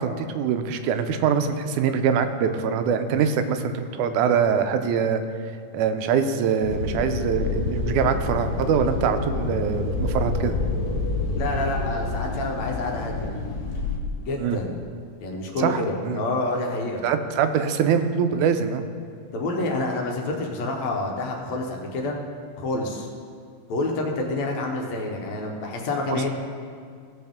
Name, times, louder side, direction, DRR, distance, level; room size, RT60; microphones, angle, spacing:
voice 1, 0.0-5.2 5.7-10.5 14.4-14.6 15.6-16.2 17.0-18.9 26.1-26.2, right 7 dB, 85° right, 8 dB, 2.1 m, -23 dB
sound 1, 6.6-14.0, left 3 dB, 90° left, 0.8 m, -28 dB
voice 2, 11.3-13.3 14.2-14.8 15.2-17.0 19.3-22.2 22.6-23.1 23.7-26.3, left 2 dB, 70° left, 0 dB, 2.2 m, -28 dB
16.5 x 6.5 x 3.6 m, 2.2 s
omnidirectional pair, 3.4 m